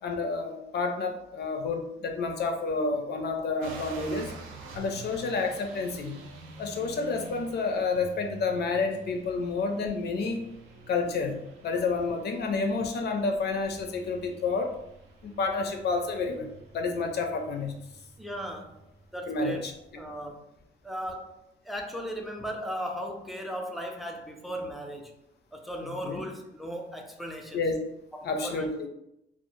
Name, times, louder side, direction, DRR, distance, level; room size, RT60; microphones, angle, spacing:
voice 1, 0.0-4.3 4.7-6.2 6.6-10.4 10.9-14.7 15.2-17.8 19.3-19.7 25.8-26.2 27.5-27.8 28.2-28.9, left 4 dB, 55° left, 4 dB, 0.5 m, -30 dB
sound 1, 3.6-20.1, right 3 dB, 85° right, 0.4 m, -48 dB
voice 2, 18.2-18.8 19.1-19.7 20.0-20.4 20.8-21.4 21.6-25.1 25.5-27.6 28.1-28.9, equal, ahead, 2 dB, 0.4 m, -37 dB
2.1 x 2.0 x 3.0 m, 0.81 s
cardioid pair, 90°, 20 cm